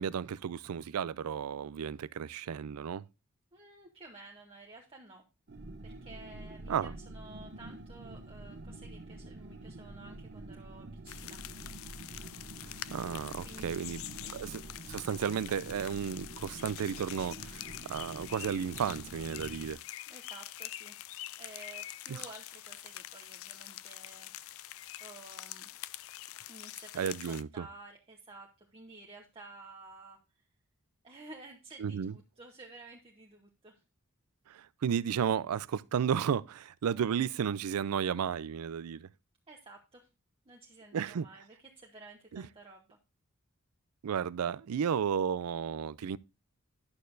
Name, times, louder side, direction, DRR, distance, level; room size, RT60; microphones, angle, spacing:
voice 1, 0.0-3.0 6.7-6.9 12.9-14.6 14.9-19.8 22.1-22.2 26.9-27.6 31.8-32.1 34.5-39.1 40.9-41.3 42.3-42.4 44.0-46.2, right 7 dB, 80° right, 0.4 m, -33 dB
voice 2, 3.5-5.2 5.8-11.4 11.7-11.9 13.4-14.4 14.7-14.9 20.1-21.0 21.4-25.7 26.5-30.2 31.0-33.8 39.5-40.1 40.4-41.5 41.7-42.9, right 2 dB, 25° right, 1.0 m, -52 dB
sound 1, 5.5-19.7, right 2 dB, 50° right, 0.8 m, -47 dB
sound 2, 11.1-27.4, left 14 dB, 65° left, 0.4 m, -45 dB
11.5 x 6.5 x 2.6 m
head